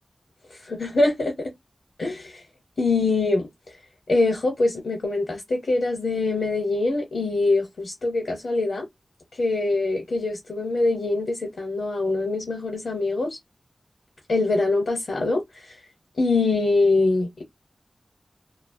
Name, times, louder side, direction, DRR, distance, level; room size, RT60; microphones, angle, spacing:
voice 1, 0.6-1.5 2.0-2.4 2.8-3.8 4.1-8.9 9.3-13.4 14.3-15.8 16.2-17.4, left 3 dB, 80° left, 0.8 m, -24 dB
2.5 x 2.1 x 2.2 m
wide cardioid pair, 90°, 0 cm